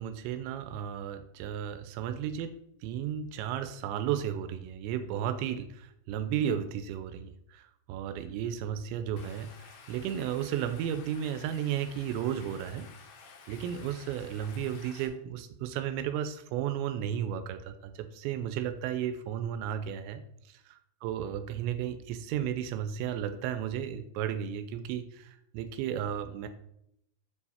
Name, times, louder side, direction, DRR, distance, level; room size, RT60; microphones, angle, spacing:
voice 1, 0.0-2.6 2.8-12.9 13.5-20.2 20.5-26.5, right 9 dB, 85° right, 9 dB, 2.7 m, -34 dB
Stream, 9.2-15.1, left 5 dB, 90° left, 1.8 m, -52 dB
7.0 x 4.6 x 4.2 m, 0.77 s
omnidirectional pair, 5.3 m